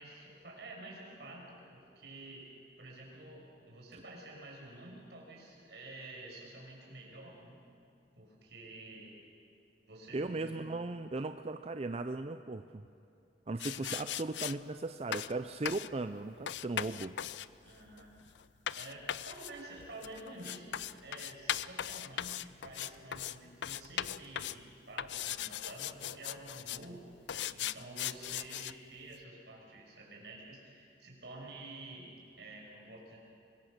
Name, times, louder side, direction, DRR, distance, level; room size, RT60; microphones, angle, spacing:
voice 1, 0.0-2.5 2.8-7.6 8.1-9.2 9.9-10.6 13.7-14.1 17.6-18.1 18.7-33.2, right 2 dB, 70° right, -2 dB, 6.2 m, -50 dB
voice 2, 10.1-12.9 13.5-17.1, right 2 dB, 35° right, 9 dB, 0.5 m, -37 dB
sound 1, 13.6-14.6 15.1-15.3 15.7-15.9 16.5-23.4 23.6-24.6 25.0-26.9 27.3-28.7, left 10 dB, 80° left, 0.5 m, -39 dB
24.5 x 21.5 x 6.6 m, 2.7 s
head